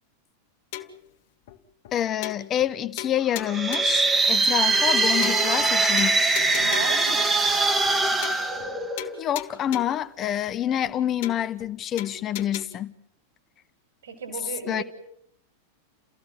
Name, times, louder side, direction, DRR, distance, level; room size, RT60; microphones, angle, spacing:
sound 1, 0.7-1.1 1.5-1.6 1.8-1.9 2.2-2.7 3.0-4.0 4.5-4.6 4.8-4.9 5.2-5.7 6.0-7.1 7.5-7.6 7.8-8.0 8.2-8.7 9.0-10.0 10.5-10.6 10.8-10.9 11.2-11.7 12.0-12.6, left 12 dB, 50° left, 1.9 m, -37 dB
voice 1, 1.9-6.4 9.2-12.9 14.7-14.8, left 11 dB, 30° left, 1.0 m, -27 dB
sound 2, 3.4-9.3, right 3 dB, 15° right, 1.9 m, -22 dB
voice 2, 6.6-7.3 14.0-14.8, right 5 dB, 65° right, 5.9 m, -34 dB
30.0 x 15.5 x 9.1 m
figure-of-eight pair, 90°, 0 cm